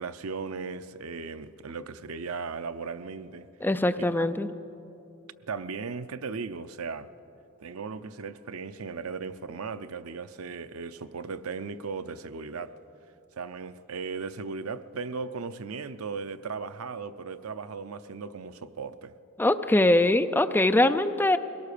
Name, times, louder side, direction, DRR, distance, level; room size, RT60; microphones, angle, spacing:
voice 1, 0.0-3.5 4.0-4.3 5.5-7.1 7.6-12.7 13.4-19.1, right 5 dB, 80° right, 0.6 m, -37 dB
voice 2, 3.6-4.5 19.4-21.4, left 1 dB, 10° left, 0.5 m, -22 dB
22.0 x 17.5 x 6.7 m
head